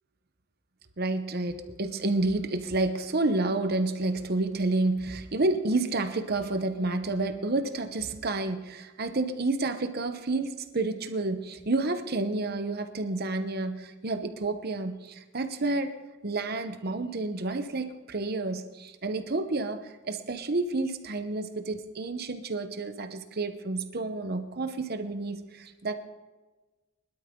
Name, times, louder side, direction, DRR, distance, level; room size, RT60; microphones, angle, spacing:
voice 1, 1.0-15.9 16.2-25.9, right 2 dB, 50° right, 1.0 m, -30 dB
21.5 x 12.0 x 3.8 m
head